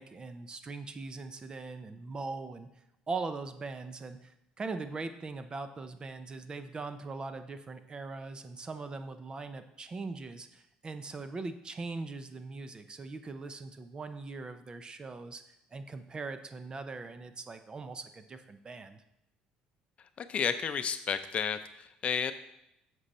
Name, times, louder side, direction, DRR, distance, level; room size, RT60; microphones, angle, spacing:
voice 1, 0.0-2.7 3.1-15.4 15.7-19.0, right 3 dB, 30° right, 10 dB, 0.7 m, -41 dB
voice 2, 20.2-22.3, left 7 dB, 45° left, 11 dB, 0.6 m, -32 dB
7.8 x 6.3 x 4.3 m, 0.82 s
supercardioid pair, 95°, 3 cm